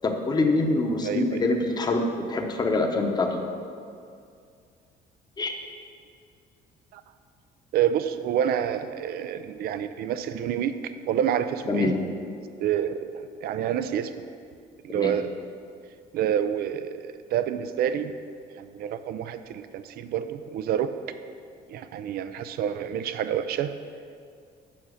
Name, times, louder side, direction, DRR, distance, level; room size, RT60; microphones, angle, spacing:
voice 1, 0.0-3.4 5.4-5.5 11.7-12.1 14.9-15.1, left 2 dB, 25° left, 3 dB, 0.9 m, -25 dB
voice 2, 1.0-1.4 6.9-7.0 7.7-11.9 12.6-14.1 14.8-15.3 16.1-18.1 18.6-20.9 21.7-23.7, right 9 dB, 65° right, 11 dB, 0.5 m, -28 dB
7.3 x 5.6 x 6.3 m, 2.3 s
cardioid pair, 110°, 17 cm